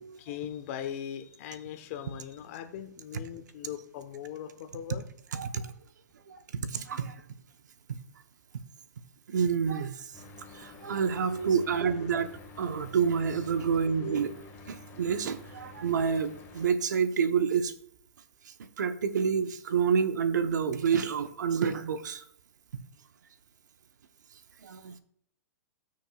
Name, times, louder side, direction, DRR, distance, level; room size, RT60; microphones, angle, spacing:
voice 1, 0.2-5.1, left 10 dB, 50° left, 8 dB, 1.1 m, -39 dB
voice 2, 5.3-5.7 6.3-7.2 7.9-8.0 9.3-10.1 10.5-17.7 18.8-22.2 22.7-22.8 24.6-25.0, right 6 dB, 85° right, 10 dB, 0.9 m, -28 dB
Mechanical fan, 10.1-16.7, left 2 dB, 25° left, 1.8 m, -49 dB
18.0 x 6.3 x 2.4 m, 0.65 s
hypercardioid pair, 145°, 9 cm